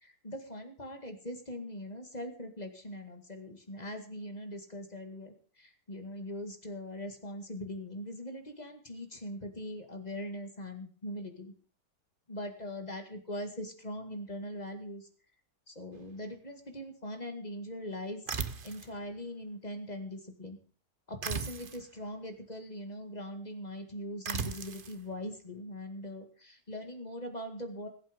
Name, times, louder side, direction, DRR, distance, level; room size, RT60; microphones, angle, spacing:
voice 1, 0.0-11.5 12.3-15.1 15.7-18.3 18.6-20.6 21.1-27.9, left 1 dB, 20° left, 6 dB, 2.1 m, -41 dB
sound 1, 18.3-18.9 21.2-21.9 24.3-25.0, right 5 dB, 40° right, 0.9 m, -36 dB
21.5 x 8.3 x 5.2 m, 0.41 s
omnidirectional pair, 2.0 m